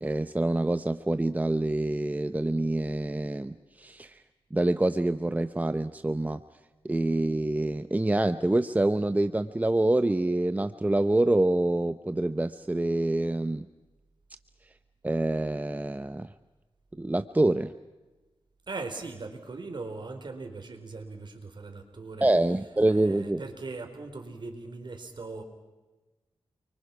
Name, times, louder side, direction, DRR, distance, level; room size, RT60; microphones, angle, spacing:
voice 1, 0.0-4.2 4.5-6.4 6.8-13.7 15.0-16.3 17.0-17.7 22.2-23.4, right 1 dB, 15° right, 11 dB, 0.8 m, -26 dB
voice 2, 18.7-22.3 22.8-25.4, right 3 dB, 50° right, 6 dB, 4.4 m, -39 dB
29.5 x 24.0 x 5.9 m, 1.2 s
wide cardioid pair, 80°, 10 cm